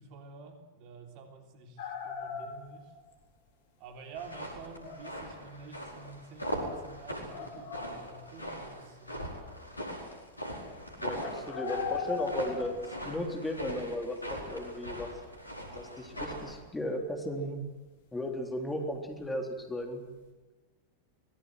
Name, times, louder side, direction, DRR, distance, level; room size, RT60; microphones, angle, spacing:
voice 1, 0.0-2.9 3.8-9.3, right 4 dB, 45° right, 4 dB, 3.5 m, -49 dB
sound 1, 1.8-3.1 4.8-5.2 6.4-6.5 7.3-8.5 11.1-13.3 15.7-15.8, left 6 dB, 55° left, 4.9 m, -39 dB
sound 2, 4.2-16.6, equal, 85° left, 4.8 m, -40 dB
voice 2, 11.0-15.1 15.7-17.6 18.1-20.0, left 1 dB, 10° left, 3 dB, 3.7 m, -35 dB
25.0 x 19.5 x 8.0 m, 1.1 s
figure-of-eight pair, 90°, 0 cm